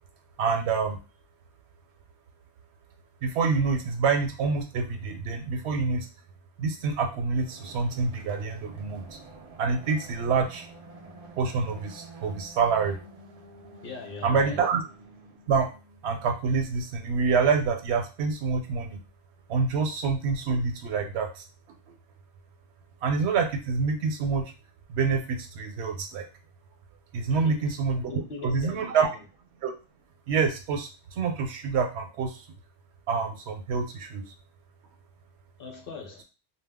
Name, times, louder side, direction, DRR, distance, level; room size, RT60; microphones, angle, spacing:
voice 1, 0.4-1.0 3.2-6.1 6.6-9.2 9.6-10.7 11.4-13.0 14.2-14.8 15.5-15.7 16.0-19.0 19.5-21.4 23.0-24.5 24.9-26.2 27.1-28.1 28.4-29.1 29.6-29.7 30.3-32.4 33.1-34.2, right 5 dB, 75° right, 0.8 m, -27 dB
sound 1, 6.9-16.1, right 2 dB, 60° right, 0.4 m, -49 dB
voice 2, 13.8-14.6 27.3-27.7 28.1-29.1 35.6-36.2, left 4 dB, 60° left, 0.7 m, -40 dB
2.2 x 2.0 x 3.4 m
omnidirectional pair, 1.1 m